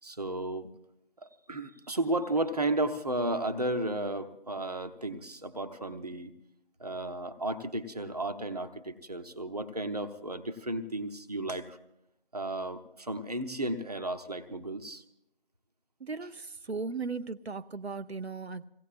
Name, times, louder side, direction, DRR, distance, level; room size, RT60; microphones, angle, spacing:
voice 1, 0.0-0.7 1.2-6.3 6.8-11.8 12.3-15.0, right 1 dB, 40° right, 9 dB, 0.9 m, -33 dB
voice 2, 16.0-18.6, right 4 dB, 90° right, 9 dB, 0.7 m, -37 dB
27.0 x 17.0 x 2.5 m, 0.80 s
figure-of-eight pair, 170°, 31 cm